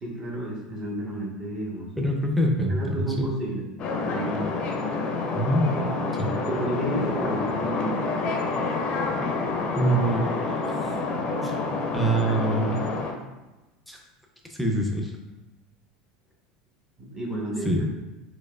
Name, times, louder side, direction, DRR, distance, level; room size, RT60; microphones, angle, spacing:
voice 1, 0.0-1.9 2.7-3.6 3.9-4.5 6.5-8.0 17.0-17.8, right 1 dB, 25° right, -3 dB, 1.0 m, -31 dB
voice 2, 2.0-3.1 5.3-5.6 6.2-6.3 9.8-11.0 11.4-11.6 11.9-13.0 13.9-14.0 14.5-15.1 17.6-17.8, right 1 dB, ahead, 0 dB, 0.5 m, -25 dB
sound 1, 3.8-13.1, left 3 dB, 45° left, 0.5 m, -28 dB
4.5 x 2.3 x 2.3 m, 1.1 s
supercardioid pair, 110°, 3 cm